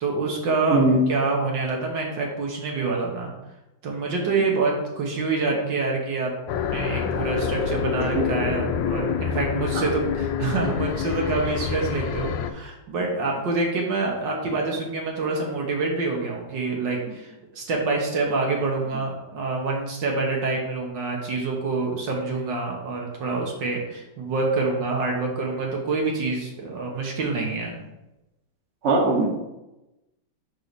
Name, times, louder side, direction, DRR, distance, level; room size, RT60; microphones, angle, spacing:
voice 1, 0.0-3.3 3.8-27.8, right 3 dB, 70° right, 0 dB, 1.8 m, -26 dB
voice 2, 0.7-1.0 8.1-8.2 28.8-29.3, right 2 dB, 40° right, -1 dB, 1.2 m, -19 dB
sound 1, 6.5-12.5, left 8 dB, 80° left, 1.2 m, -27 dB
5.6 x 4.8 x 4.0 m, 0.96 s
omnidirectional pair, 2.1 m